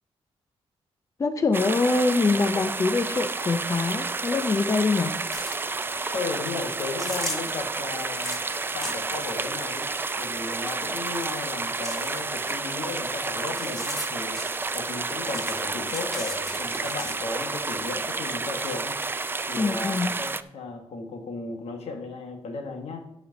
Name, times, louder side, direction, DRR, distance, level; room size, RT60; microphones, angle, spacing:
voice 1, 1.2-5.1 19.6-20.1, left 3 dB, 30° left, 8 dB, 0.5 m, -24 dB
sound 1, 1.5-20.4, right 3 dB, 20° right, 0.3 m, -30 dB
sound 2, 5.3-6.0 6.3-11.2 11.5-15.0 15.3-17.6, equal, 5° left, 2.1 m, -38 dB
voice 2, 6.1-8.4 8.7-9.9 10.2-14.4 14.7-19.0 19.5-23.1, left 4 dB, 85° left, 3 dB, 1.5 m, -35 dB
11.0 x 5.1 x 5.2 m, 0.80 s
wide cardioid pair, 115°, 10 cm